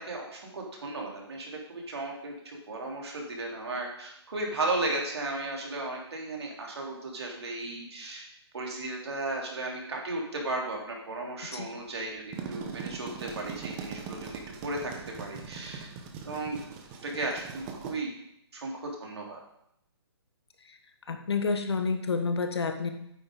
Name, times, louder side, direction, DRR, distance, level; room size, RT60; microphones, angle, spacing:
voice 1, 0.0-8.2 8.5-12.2 12.5-14.3 14.6-14.9 15.2-15.9 16.2-16.6 17.0-18.1 18.5-19.4, right 2 dB, 70° right, -1 dB, 2.9 m, -35 dB
sound 1, 12.1-17.9, right 6 dB, 15° right, 0.8 m, -41 dB
voice 2, 21.1-22.9, left 4 dB, 70° left, 7 dB, 1.3 m, -29 dB
9.0 x 7.4 x 3.8 m, 0.76 s
hypercardioid pair, 165°, 14 cm